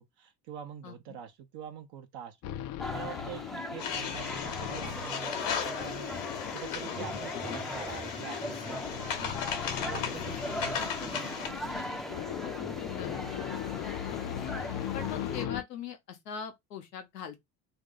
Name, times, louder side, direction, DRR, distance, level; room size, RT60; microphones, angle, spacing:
voice 1, 0.0-2.6 2.9-9.4 9.8-12.4, right 9 dB, 55° right, 0.7 m, -45 dB
voice 2, 0.8-1.2 10.2-10.4 12.9-13.3 14.9-17.4, left 7 dB, 90° left, 0.8 m, -41 dB
sound 1, 2.4-15.6, left 12 dB, 50° left, 0.5 m, -39 dB
sound 2, 2.8-15.5, equal, ahead, 0.5 m, -40 dB
sound 3, 3.8-11.5, left 7 dB, 70° left, 1.1 m, -37 dB
3.0 x 2.6 x 3.7 m
hypercardioid pair, 55°, 48 cm